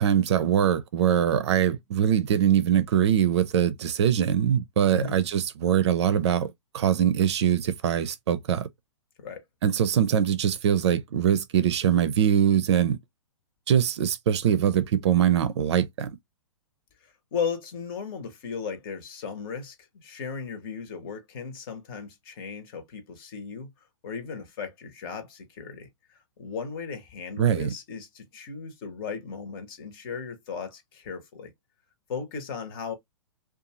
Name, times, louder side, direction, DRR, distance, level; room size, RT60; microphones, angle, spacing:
voice 1, 0.0-8.7 9.6-13.0 13.7-16.1 27.4-27.7, right 9 dB, 60° right, 0.5 m, -23 dB
voice 2, 17.3-19.7 20.0-23.7 24.0-25.9 26.4-31.5 32.1-32.9, left 5 dB, 45° left, 1.0 m, -36 dB
2.6 x 2.3 x 2.8 m
hypercardioid pair, 120°, 16 cm